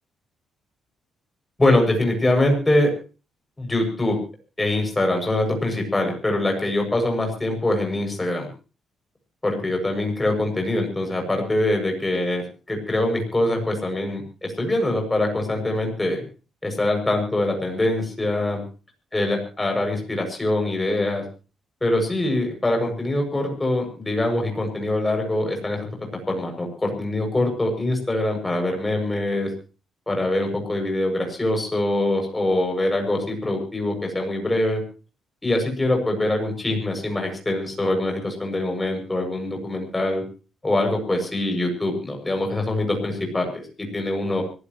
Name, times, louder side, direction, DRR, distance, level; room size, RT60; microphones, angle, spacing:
voice 1, 1.6-2.9 3.6-4.2 4.6-8.5 9.4-16.2 16.6-18.6 19.1-21.2 21.8-25.9 26.3-29.5 30.1-34.8 35.4-40.2 40.6-44.4, left 1 dB, 15° left, 3 dB, 7.4 m, -23 dB
25.0 x 16.0 x 3.2 m, 0.35 s
cardioid pair, 90°, 0 cm